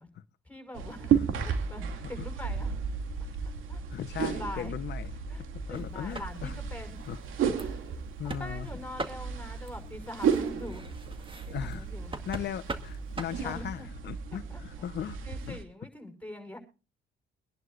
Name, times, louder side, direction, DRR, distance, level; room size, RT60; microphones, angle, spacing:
voice 1, 0.5-1.1 1.4-2.8 3.7-3.8 4.2-4.7 5.3-7.1 7.6-8.0 8.4-10.8 11.5-12.1 13.2-13.9 14.5-14.6 15.2-16.6, left 1 dB, 5° left, 6.0 m, -43 dB
sound 1, 0.7-15.6, right 7 dB, 85° right, 2.6 m, -33 dB
voice 2, 3.9-5.1 5.7-6.6 7.1-7.2 8.2-8.7 11.5-11.9 12.3-15.2 15.5-15.6, left 10 dB, 60° left, 1.0 m, -37 dB
sound 2, 5.7-13.6, right 2 dB, 25° right, 2.0 m, -43 dB
25.0 x 11.0 x 2.6 m
cardioid pair, 90°, 20 cm